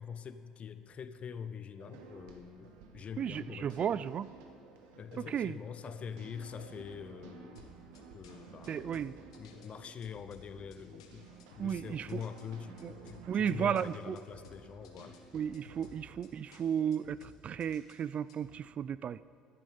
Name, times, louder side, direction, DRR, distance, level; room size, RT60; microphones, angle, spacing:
voice 1, 0.0-4.0 5.0-7.6 8.1-11.3 11.6-12.8 13.0-15.2, left 7 dB, 45° left, 11 dB, 0.8 m, -44 dB
sound 1, 1.8-16.9, right 4 dB, 80° right, 1.4 m, -54 dB
voice 2, 3.2-4.3 5.2-5.6 8.7-9.1 11.6-12.2 12.8-12.9 13.3-14.2 15.3-19.2, right 8 dB, 45° right, 18 dB, 0.3 m, -34 dB
sound 2, 7.6-18.6, left 6 dB, 90° left, 1.3 m, -58 dB
15.0 x 10.5 x 5.5 m, 2.7 s
hypercardioid pair, 70°, 3 cm